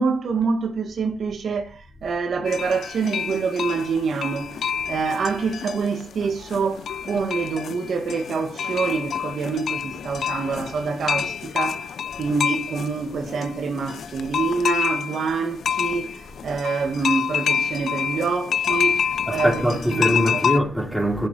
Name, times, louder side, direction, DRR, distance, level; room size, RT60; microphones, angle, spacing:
voice 1, 0.0-19.5 19.9-20.5, right 4 dB, 70° right, 1.8 m, -26 dB
sound 1, 2.4-20.6, left 7 dB, 75° left, 0.7 m, -28 dB
voice 2, 19.2-21.3, equal, ahead, 4.7 m, -23 dB
16.0 x 6.9 x 4.7 m
cardioid pair, 65°, 0 cm